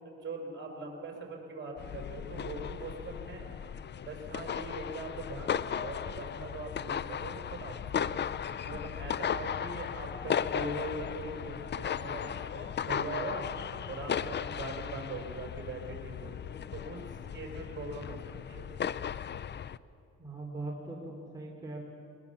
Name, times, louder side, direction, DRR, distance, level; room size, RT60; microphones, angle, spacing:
voice 1, 0.0-3.5 4.0-8.2 8.6-13.5 13.9-17.0 17.3-18.2 18.5-18.7, right 2 dB, 40° right, 2 dB, 4.7 m, -41 dB
sound 1, 1.8-19.8, left 8 dB, 35° left, 0.5 m, -36 dB
voice 2, 20.2-21.8, right 2 dB, 10° right, -2 dB, 3.1 m, -40 dB
20.5 x 20.0 x 7.1 m, 2.6 s
cardioid pair, 90°, 30 cm